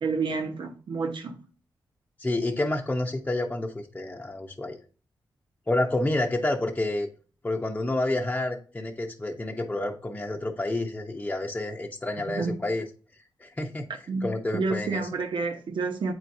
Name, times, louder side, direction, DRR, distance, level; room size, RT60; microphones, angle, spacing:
voice 1, 0.0-1.4 12.3-12.6 14.1-14.3 14.5-16.1, right 4 dB, 70° right, 1.0 m, -29 dB
voice 2, 2.2-4.8 5.7-7.1 7.4-12.8 13.4-13.9 14.2-15.1, left 2 dB, 20° left, 0.8 m, -29 dB
8.0 x 4.5 x 2.7 m
cardioid pair, 75°, 8 cm